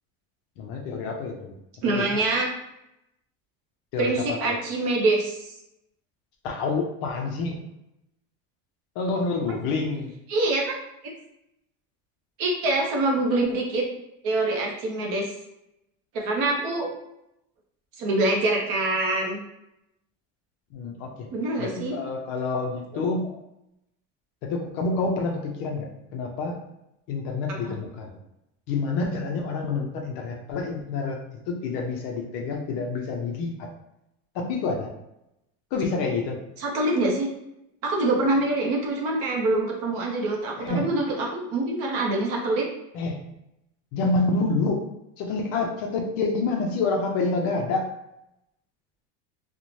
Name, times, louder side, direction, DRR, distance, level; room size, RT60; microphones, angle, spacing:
voice 1, 0.6-1.5 1.9-2.3 3.9-4.6 6.4-7.6 9.0-10.1 20.7-21.3 21.6-23.3 24.4-26.6 27.1-28.2 28.7-33.7 34.3-34.9 35.7-36.4 40.6-40.9 42.9-43.2 43.9-44.8 45.2-47.9, left 3 dB, 45° left, 1 dB, 0.4 m, -28 dB
voice 2, 1.8-2.5 4.0-5.4 10.3-10.8 12.4-13.8 14.2-15.3 16.1-16.9 18.0-19.4 21.3-22.0 27.6-27.7 36.6-37.3 37.8-42.7, right 2 dB, 45° right, -1 dB, 0.6 m, -25 dB
2.6 x 2.1 x 3.0 m, 0.85 s
cardioid pair, 180°, 33 cm